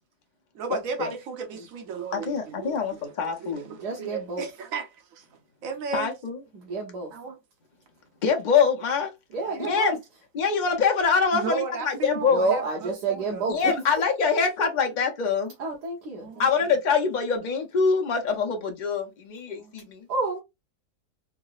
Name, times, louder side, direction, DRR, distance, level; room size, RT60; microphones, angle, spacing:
voice 1, 0.5-5.3 5.6-6.1 7.1-7.4 9.4-9.7 11.3-13.5 16.2-16.5 19.5-19.8, right 6 dB, 65° right, 1.1 m, -35 dB
voice 2, 2.1-3.7 5.9-6.4 8.2-9.1 9.7-10.0 10.3-12.4 13.5-15.5 16.4-20.1, left 5 dB, 45° left, 0.6 m, -24 dB
voice 3, 3.7-4.4 6.5-7.1 9.3-9.9 12.2-13.7 15.6-16.5 20.1-20.4, right 3 dB, 85° right, 1.6 m, -29 dB
4.7 x 2.0 x 2.3 m
omnidirectional pair, 1.7 m